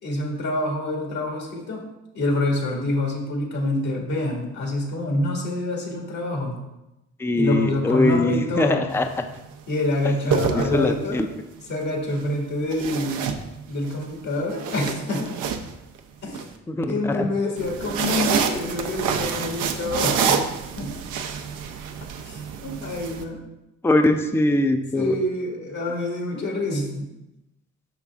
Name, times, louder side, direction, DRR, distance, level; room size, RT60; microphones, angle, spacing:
voice 1, 0.0-1.8 2.1-6.6 7.4-8.8 9.7-11.3 11.7-13.3 13.7-15.3 16.2-16.4 16.9-20.5 20.8-20.9 22.2-23.4 24.9-27.1, left 1 dB, 65° left, 0 dB, 1.9 m, -26 dB
voice 2, 7.2-9.3 10.3-11.3 16.7-17.3 23.8-25.2, left 2 dB, 10° left, 7 dB, 0.5 m, -22 dB
sound 1, 8.9-9.2 10.1-11.2 12.7-13.9 14.3-16.4 17.6-23.2, right 6 dB, 90° right, 0.6 m, -27 dB
5.9 x 5.6 x 3.5 m, 0.94 s
cardioid pair, 90°, 30 cm